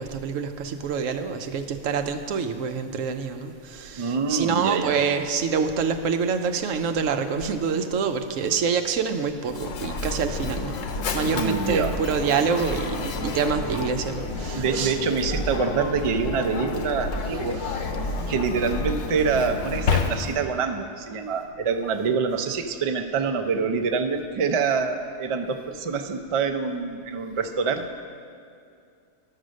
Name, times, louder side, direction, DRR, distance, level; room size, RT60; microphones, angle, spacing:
voice 1, 0.0-10.8 11.1-15.0 17.6-17.9, right 6 dB, 90° right, 7 dB, 1.1 m, -26 dB
voice 2, 4.0-5.0 11.3-12.0 14.6-17.6 18.3-28.0, right 5 dB, 50° right, 6 dB, 0.4 m, -26 dB
Mechanisms, 9.4-20.6, left 3 dB, 80° left, 1.1 m, -30 dB
12.0 x 6.6 x 6.3 m, 2.3 s
omnidirectional pair, 1.3 m